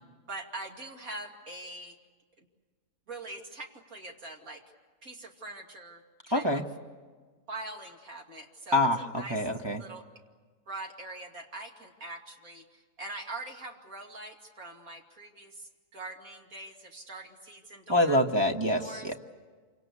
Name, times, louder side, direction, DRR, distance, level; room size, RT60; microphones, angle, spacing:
voice 1, 0.3-2.0 2.4-2.5 3.1-4.6 5.0-6.6 7.5-8.9 9.1-9.5 9.8-10.1 10.7-18.2 18.8-19.1, right 2 dB, 60° right, 2 dB, 2.9 m, -43 dB
voice 2, 6.3-6.6 8.7-9.8 17.9-19.1, left 1 dB, 15° right, 1 dB, 1.2 m, -26 dB
28.0 x 25.5 x 8.3 m, 1.5 s
omnidirectional pair, 1.7 m